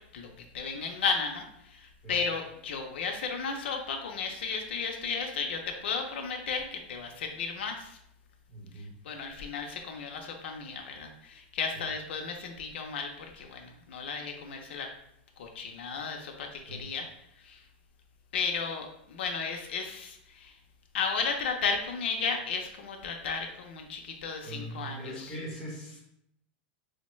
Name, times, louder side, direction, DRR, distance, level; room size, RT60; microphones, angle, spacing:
voice 1, 0.5-8.0 8.8-14.9 15.4-17.1 17.4-17.6 18.3-20.6 20.9-25.3, left 5 dB, 80° left, 3 dB, 0.5 m, -34 dB
voice 2, 8.5-9.0 16.7-16.8 24.4-26.0, right 1 dB, 10° left, -6 dB, 1.0 m, -41 dB
4.4 x 2.1 x 3.0 m, 0.76 s
supercardioid pair, 175°, 6 cm